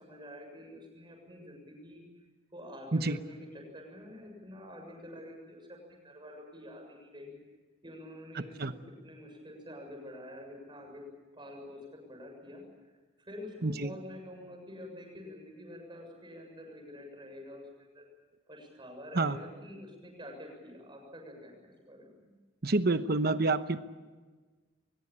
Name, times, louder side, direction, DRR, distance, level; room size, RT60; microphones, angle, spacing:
voice 1, 0.0-2.0 2.5-3.5 3.7-7.4 7.8-11.0 11.3-17.7 17.9-18.1 18.5-22.3, left 1 dB, 20° right, 2 dB, 7.0 m, -47 dB
voice 2, 13.6-13.9 19.1-19.4 22.6-23.8, right 3 dB, 50° right, 11 dB, 1.0 m, -28 dB
23.0 x 21.0 x 8.8 m, 1.3 s
head